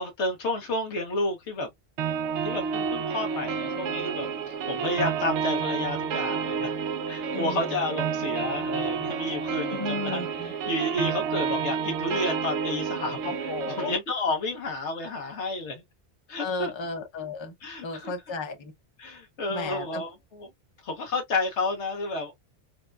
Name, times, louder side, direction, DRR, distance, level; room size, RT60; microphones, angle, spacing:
voice 1, 0.0-1.7 2.1-2.2 2.4-6.7 7.1-15.8 16.3-16.7 17.6-18.1 19.0-20.5 20.8-22.3, left 2 dB, 80° left, 1.3 m, -31 dB
sound 1, 2.0-14.0, right 6 dB, 80° right, 0.9 m, -30 dB
voice 2, 7.3-7.9 9.7-10.5 13.2-13.9 16.4-17.5 17.8-18.7 19.5-20.0, left 3 dB, 30° left, 0.8 m, -34 dB
4.1 x 2.2 x 2.3 m
omnidirectional pair, 1.2 m